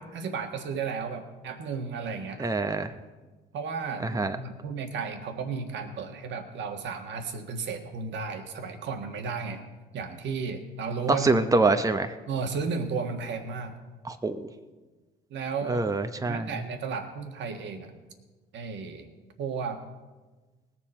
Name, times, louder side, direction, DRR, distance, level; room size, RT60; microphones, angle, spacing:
voice 1, 0.0-2.5 3.5-9.6 9.9-11.4 12.3-13.8 15.3-16.0 16.3-18.0 18.5-19.1 19.4-19.8, right 5 dB, 60° right, 5 dB, 1.5 m, -34 dB
voice 2, 2.4-2.9 4.0-4.4 11.1-12.1 14.1-14.5 15.6-16.5, right 3 dB, 15° right, 8 dB, 0.9 m, -25 dB
19.5 x 7.5 x 4.4 m, 1.3 s
hypercardioid pair, 55°, 20 cm